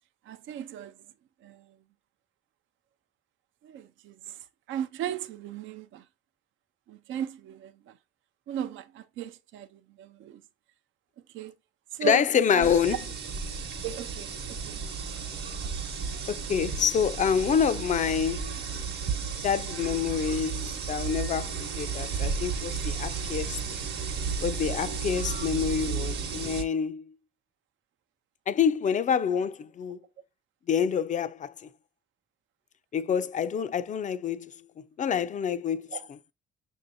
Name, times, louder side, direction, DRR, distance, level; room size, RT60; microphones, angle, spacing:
voice 1, 0.2-1.0 1.4-1.8 3.6-6.1 6.9-8.0 8.5-10.4 11.3-11.5 11.9-12.7 13.8-14.8 35.9-36.1, right 9 dB, 80° right, 0.5 m, -37 dB
voice 2, 12.0-13.0 16.3-18.5 19.4-23.6 24.4-27.0 28.5-30.0 30.7-31.5 32.9-34.5 35.0-35.9, left 7 dB, 40° left, 0.4 m, -27 dB
sound 1, 12.6-26.6, right 5 dB, 60° right, 1.0 m, -33 dB
6.0 x 2.7 x 2.6 m
cardioid pair, 90°, 20 cm